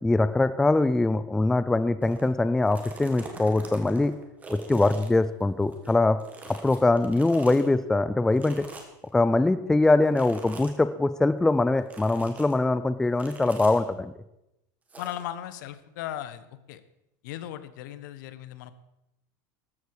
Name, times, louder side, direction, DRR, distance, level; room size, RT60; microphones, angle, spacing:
voice 1, 0.0-4.1 4.5-6.2 6.6-8.7 9.1-14.1, left 2 dB, 5° left, 13 dB, 0.4 m, -23 dB
sound 1, 2.0-2.3 2.6-5.9 6.2-7.7 8.4-9.1 10.1-10.8 11.9-12.5 13.2-13.8 14.9-15.2, right 3 dB, 15° right, 2.1 m, -44 dB
voice 2, 15.0-16.8 17.2-18.7, left 12 dB, 75° left, 13 dB, 1.2 m, -37 dB
13.5 x 13.0 x 4.8 m, 0.89 s
supercardioid pair, 160°, 10 cm